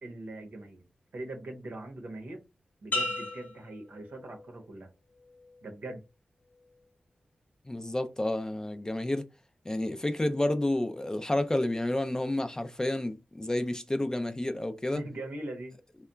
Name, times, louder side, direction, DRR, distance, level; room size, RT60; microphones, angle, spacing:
voice 1, 0.0-0.8 1.1-2.4 2.8-4.9 5.6-6.0 14.9-15.7, right 2 dB, 75° right, 0.8 m, -41 dB
sound 1, 2.9-4.7 5.2-5.6, left 2 dB, 75° left, 1.0 m, -36 dB
voice 2, 7.7-9.3 9.7-15.0, left 1 dB, 20° left, 0.4 m, -30 dB
2.8 x 2.2 x 2.2 m
cardioid pair, 40°, 3 cm